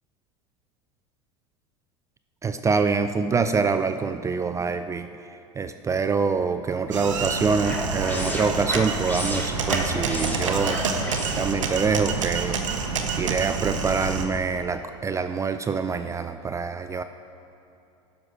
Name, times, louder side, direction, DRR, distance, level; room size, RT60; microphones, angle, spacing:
voice 1, 2.4-5.1 5.6-10.8 11.4-12.6 13.2-17.0, right 5 dB, 20° right, 9 dB, 0.4 m, -25 dB
sound 1, 6.7-11.9, left 1 dB, 10° left, 1.4 m, -33 dB
sound 2, 6.9-14.2, right 5 dB, 80° right, 0.9 m, -28 dB
11.0 x 6.1 x 5.1 m, 2.8 s
hypercardioid pair, 80°, 16 cm